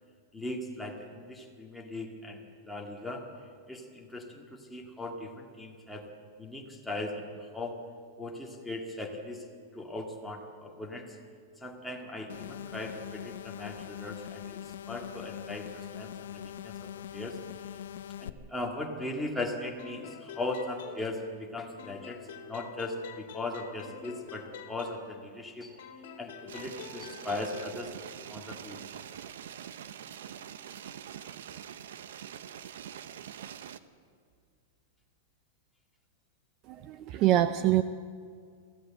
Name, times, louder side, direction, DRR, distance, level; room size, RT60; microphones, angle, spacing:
voice 1, 0.3-3.3 3.7-6.1 6.4-7.8 8.2-9.5 9.7-11.2 11.6-17.4 18.2-27.9 28.3-28.8, left 2 dB, 5° left, 0 dB, 2.0 m, -39 dB
sound 1, 12.3-18.3, left 10 dB, 80° left, 0.8 m, -42 dB
sound 2, 19.8-21.5 21.8-25.4 25.8-27.8, left 8 dB, 55° left, 2.3 m, -46 dB
sound 3, 26.5-33.8, right 9 dB, 75° right, 0.9 m, -44 dB
voice 2, 36.7-37.8, right 13 dB, 30° right, 12 dB, 0.6 m, -25 dB
23.0 x 15.5 x 7.7 m, 2.1 s
supercardioid pair, 170°, 0 cm